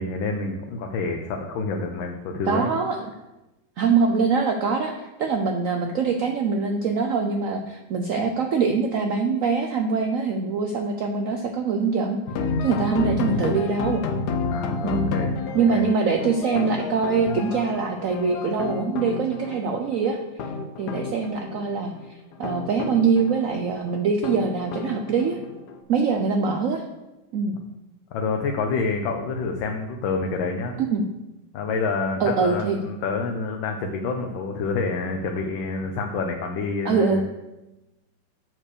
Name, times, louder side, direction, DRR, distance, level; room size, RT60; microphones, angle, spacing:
voice 1, 0.0-2.7 14.5-15.3 15.7-15.9 28.1-30.7 31.5-37.2, left 4 dB, 85° left, 3 dB, 1.5 m, -28 dB
voice 2, 2.5-3.0 3.8-12.2 12.6-14.0 14.8-15.1 15.5-20.5 20.8-21.9 22.4-25.4 25.9-26.8 27.3-27.6 30.8-31.1 32.2-32.8 36.8-37.2, right 5 dB, 85° right, 4 dB, 0.7 m, -23 dB
sound 1, 12.3-25.8, left 4 dB, 65° left, 1.2 m, -30 dB
7.4 x 4.6 x 6.6 m, 1.0 s
omnidirectional pair, 2.1 m